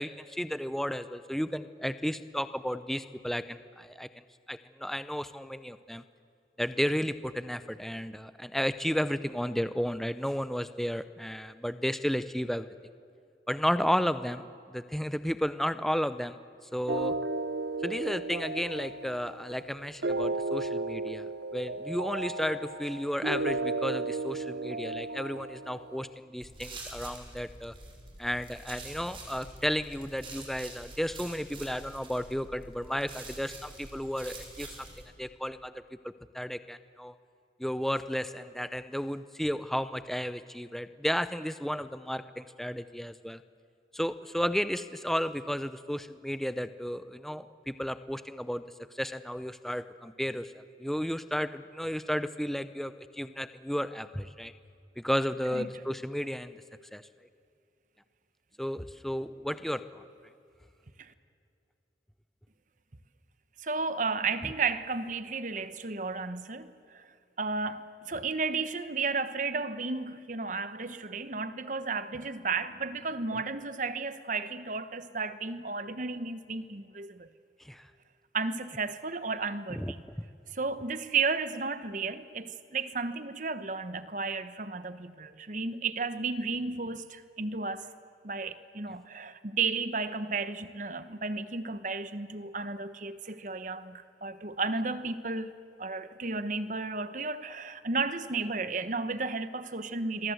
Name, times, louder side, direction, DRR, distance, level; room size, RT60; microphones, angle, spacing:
voice 1, 0.0-4.1 4.5-6.0 6.6-12.7 13.5-16.4 16.7-17.2 17.8-27.7 28.2-35.7 36.0-37.1 37.6-43.4 43.9-48.6 48.9-50.5 50.8-54.5 55.0-56.6 56.9-57.0 58.6-60.0 77.6-77.8 79.8-79.9, equal, ahead, 0.7 m, -33 dB
sound 1, 16.9-26.1, right 2 dB, 70° right, 0.8 m, -34 dB
sound 2, 26.4-35.0, right 2 dB, 30° right, 4.6 m, -46 dB
voice 2, 63.6-77.3 78.3-80.0 80.5-87.9 88.2-95.5 95.8-100.3, right 4 dB, 45° right, 1.1 m, -33 dB
27.5 x 22.5 x 7.9 m
head